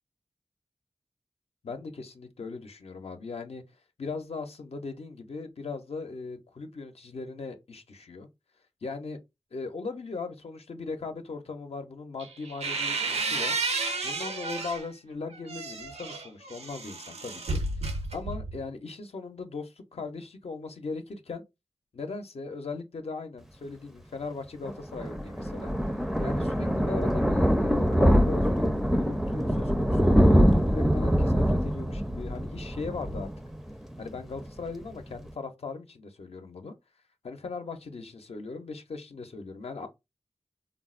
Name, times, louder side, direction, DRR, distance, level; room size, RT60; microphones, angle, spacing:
voice 1, 1.6-3.6 4.0-8.3 8.8-9.2 9.5-13.6 14.0-17.6 18.1-21.4 21.9-25.7 26.2-33.3 34.0-36.7 37.2-39.9, left 4 dB, 70° left, 0.6 m, -38 dB
sound 1, 12.2-14.9 15.3-18.7, right 3 dB, 80° right, 0.5 m, -32 dB
Thunder, 24.6-34.0 34.4-34.6 34.9-35.0 35.2-35.3, equal, ahead, 0.4 m, -24 dB
3.6 x 2.0 x 2.4 m
cardioid pair, 50°, 11 cm